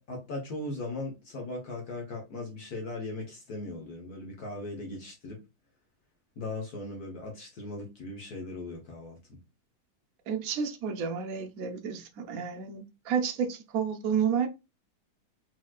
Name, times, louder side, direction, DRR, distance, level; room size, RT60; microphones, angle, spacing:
voice 1, 0.0-5.4 6.4-9.2, left 2 dB, 50° left, 1.4 m, -38 dB
voice 2, 10.3-14.5, right 7 dB, 70° right, 0.8 m, -30 dB
4.6 x 4.2 x 2.3 m
omnidirectional pair, 2.3 m